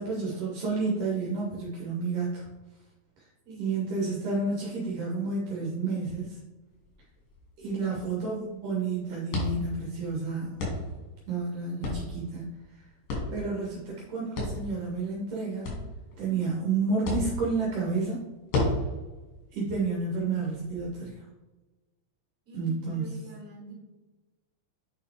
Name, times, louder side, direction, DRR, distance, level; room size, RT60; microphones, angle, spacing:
voice 1, 0.0-2.5 3.6-6.4 7.6-10.6 11.3-12.4 12.7-12.9 13.3-15.8 16.2-18.2 19.5-21.2 22.5-23.1, right 4 dB, 75° right, -4 dB, 2.8 m, -30 dB
voice 2, 3.4-4.1 7.6-8.3 13.7-13.8 18.8-19.0 22.5-23.7, right 1 dB, 50° right, -4 dB, 3.5 m, -48 dB
sound 1, 6.7-20.8, left 2 dB, 85° left, 3.8 m, -36 dB
8.6 x 4.6 x 3.5 m, 1.2 s
omnidirectional pair, 3.8 m